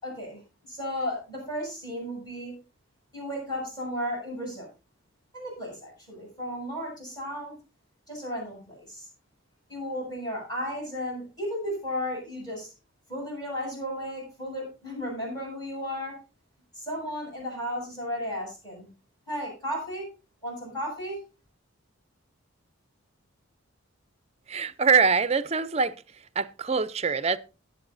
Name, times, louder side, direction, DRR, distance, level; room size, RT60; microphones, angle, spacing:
voice 1, 0.0-2.5 3.1-4.7 5.3-7.5 8.1-9.1 9.7-12.7 13.1-16.1 16.7-18.9 19.3-20.1 20.4-21.2, equal, 20° left, 7.5 m, -34 dB
voice 2, 24.5-25.9 26.4-27.4, right 5 dB, 30° right, 0.5 m, -24 dB
20.5 x 7.9 x 2.7 m
head